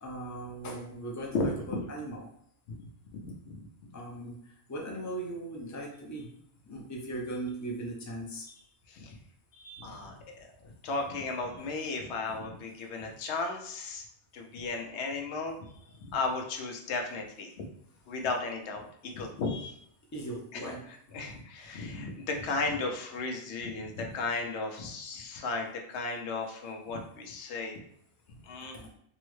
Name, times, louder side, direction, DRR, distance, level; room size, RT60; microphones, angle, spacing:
voice 1, 0.0-2.2 3.9-6.3 6.7-8.5 9.9-10.0 20.1-20.8 28.7-28.9, right 1 dB, 20° left, -1 dB, 0.5 m, -39 dB
voice 2, 1.3-1.8 2.7-3.7 8.9-9.2 9.5-14.1 14.3-17.6 18.1-19.8 20.5-27.8 28.3-28.8, left 3 dB, 90° left, 2 dB, 0.9 m, -35 dB
3.7 x 2.1 x 3.1 m, 0.70 s
omnidirectional pair, 1.1 m